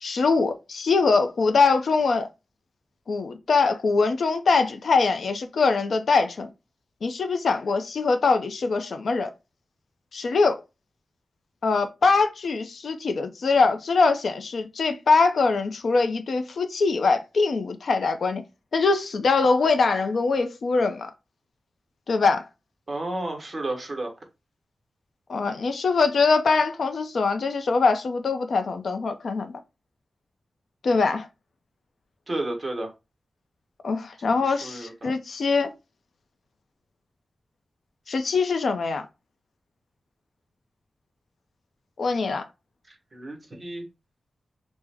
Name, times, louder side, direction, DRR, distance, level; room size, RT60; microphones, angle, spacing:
voice 1, 0.0-2.3 3.1-6.5 7.0-9.3 10.1-10.6 11.6-18.4 18.7-21.1 22.1-22.4 25.3-29.5 30.8-31.3 33.8-35.7 38.1-39.0 42.0-42.4, left 4 dB, 70° left, 0.4 m, -23 dB
voice 2, 22.9-24.1 32.3-32.9 34.3-35.1 42.9-43.9, right 2 dB, 30° right, 0.9 m, -32 dB
3.4 x 2.0 x 3.3 m
wide cardioid pair, 140°, 0 cm